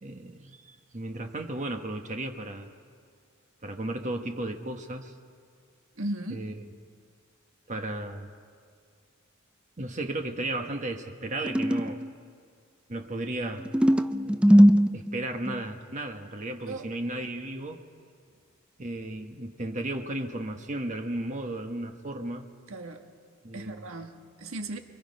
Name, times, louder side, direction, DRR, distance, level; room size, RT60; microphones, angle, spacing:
voice 1, 0.0-2.7 3.6-5.1 6.3-6.5 7.7-8.3 9.8-12.0 12.9-13.7 14.2-14.6 14.9-17.8 18.8-22.5 23.4-23.9, right 1 dB, 35° right, 5 dB, 1.2 m, -34 dB
voice 2, 6.0-6.4 16.6-16.8 22.7-23.0 23.5-24.8, right 1 dB, 70° right, 5 dB, 1.7 m, -36 dB
sound 1, 11.4-12.1 13.6-15.6, equal, 5° right, 0.5 m, -20 dB
28.5 x 23.5 x 5.3 m, 2.2 s
head